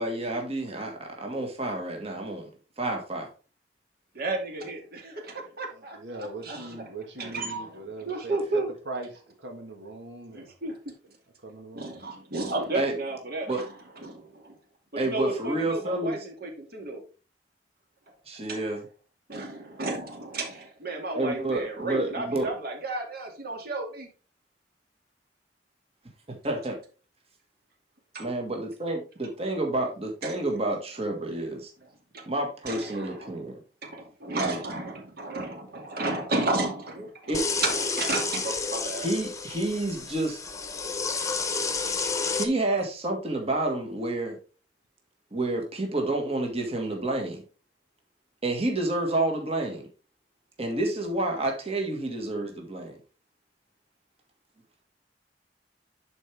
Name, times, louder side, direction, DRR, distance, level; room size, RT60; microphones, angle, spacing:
voice 1, 0.0-2.5 2.8-3.3 12.7-13.0 13.5-13.6 15.0-16.3 18.3-18.9 21.2-22.5 26.3-26.8 28.2-31.7 32.3-33.6 34.3-34.6 37.3-37.4 39.0-40.4 42.3-44.4 45.3-47.4 48.4-49.9 50.6-53.0, right 2 dB, 35° right, 1.7 m, -29 dB
voice 2, 4.1-6.9 7.2-8.7 10.3-10.9 11.7-13.7 14.0-14.6 14.9-17.0 18.5-18.6 19.3-24.1 28.1-28.3 30.2-30.4 32.1-32.3 32.7-33.3 33.8-37.4 37.6-39.1, right 2 dB, 60° right, 2.3 m, -33 dB
voice 3, 5.9-8.4 8.9-9.1 9.4-10.5 11.4-11.9, right 2 dB, 90° right, 1.5 m, -40 dB
sound 1, 37.3-42.5, left 4 dB, 20° left, 1.0 m, -30 dB
11.0 x 4.6 x 3.4 m
head